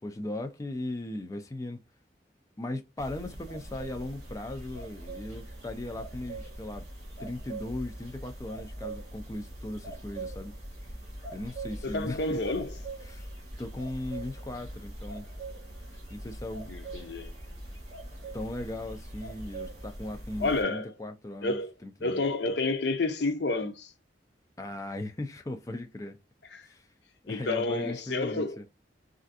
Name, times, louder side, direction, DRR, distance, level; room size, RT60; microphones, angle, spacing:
voice 1, 0.0-1.8 2.6-6.8 7.2-10.5 11.3-12.4 13.0-13.3 13.6-15.3 16.1-16.7 18.3-22.2 24.6-26.2 26.6-26.9 27.2-28.7, left 1 dB, 20° left, 0.4 m, -38 dB
sound 1, 3.0-20.6, right 2 dB, 40° right, 1.7 m, -42 dB
voice 2, 11.8-12.7 16.7-17.3 20.4-20.9 21.4-21.7 22.0-23.9 26.5-26.6 27.3-28.6, left 3 dB, 70° left, 0.6 m, -30 dB
3.3 x 2.5 x 2.5 m
head